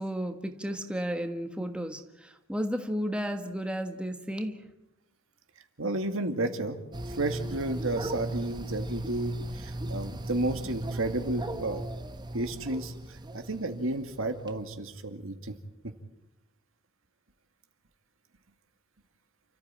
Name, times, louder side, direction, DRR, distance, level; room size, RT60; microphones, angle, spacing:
voice 1, 0.0-4.7, equal, 5° right, 6 dB, 1.4 m, -33 dB
voice 2, 5.8-6.8 7.1-11.8 12.3-15.5, right 2 dB, 65° right, 7 dB, 2.3 m, -32 dB
sound 1, 6.9-14.5, right 1 dB, 20° right, 1.1 m, -37 dB
30.0 x 14.5 x 9.0 m, 0.94 s
head